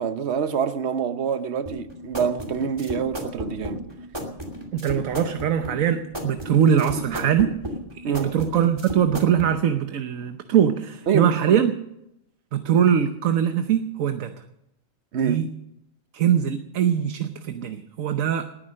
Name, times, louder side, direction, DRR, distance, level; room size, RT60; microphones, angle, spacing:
voice 1, 0.0-3.8 8.0-8.3 11.1-11.6 15.1-15.4, right 7 dB, 55° right, 1.2 m, -26 dB
sound 1, 1.6-9.5, equal, 20° right, 2.6 m, -34 dB
voice 2, 4.7-7.6 8.1-11.7 12.5-14.3 15.2-15.5 16.1-18.5, right 9 dB, 80° right, 1.3 m, -22 dB
19.5 x 10.5 x 6.4 m
omnidirectional pair, 1.4 m